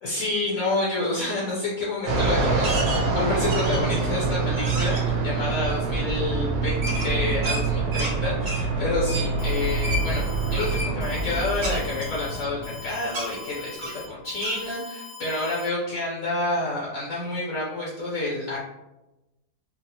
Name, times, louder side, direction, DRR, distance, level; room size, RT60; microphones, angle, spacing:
voice 1, 0.0-18.6, left 2 dB, 65° left, -5 dB, 1.0 m, -28 dB
Fixed-wing aircraft airplane, 2.1-12.9, right 3 dB, 60° right, 0.9 m, -26 dB
sound 1, 2.6-3.0 3.5-4.0 4.5-5.0 6.8-8.1 8.4-8.6 9.1-9.3 9.8-10.0 10.6-10.9 11.6-12.7 13.1-13.3 13.8-14.0 14.4-14.6, right 1 dB, 85° right, 0.4 m, -32 dB
Alarm, 9.4-15.7, left 4 dB, 90° left, 1.2 m, -42 dB
3.9 x 2.0 x 2.7 m, 1.0 s
omnidirectional pair, 1.7 m